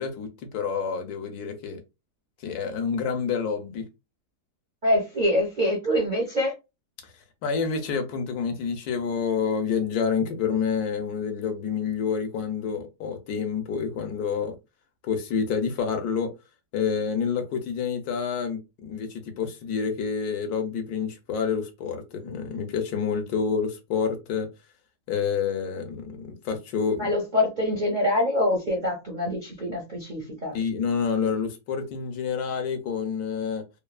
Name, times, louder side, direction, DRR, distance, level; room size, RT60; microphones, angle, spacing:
voice 1, 0.0-1.8 2.4-3.8 7.0-7.1 7.4-14.6 15.0-16.3 16.7-24.5 25.1-27.1 30.5-33.6, left 6 dB, 75° left, 1.2 m, -28 dB
voice 2, 4.8-6.5 27.0-30.6, left 1 dB, 55° right, 0.5 m, -25 dB
3.0 x 2.3 x 2.3 m
omnidirectional pair, 1.7 m